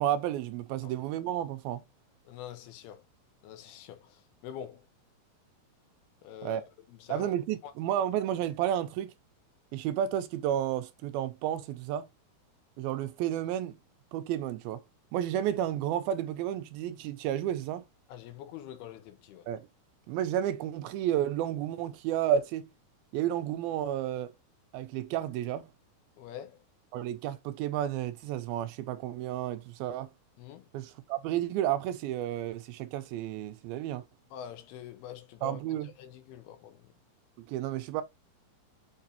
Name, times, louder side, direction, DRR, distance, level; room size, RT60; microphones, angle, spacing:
voice 1, 0.0-1.8 6.4-6.6 7.1-9.1 9.7-12.1 12.8-13.8 14.1-14.8 15.1-17.8 19.5-19.7 20.1-22.7 23.1-24.3 24.7-25.6 26.9-30.1 30.7-34.0 35.4-35.9 37.5-38.0, right 11 dB, 80° right, 2.4 m, -31 dB
voice 2, 2.3-3.0 3.4-4.9 6.2-6.6 6.9-7.3 7.6-7.7 18.1-19.5 26.2-26.6 30.4-30.7 34.3-36.9, left 10 dB, 80° left, 3.0 m, -45 dB
6.7 x 5.6 x 2.8 m
omnidirectional pair, 4.5 m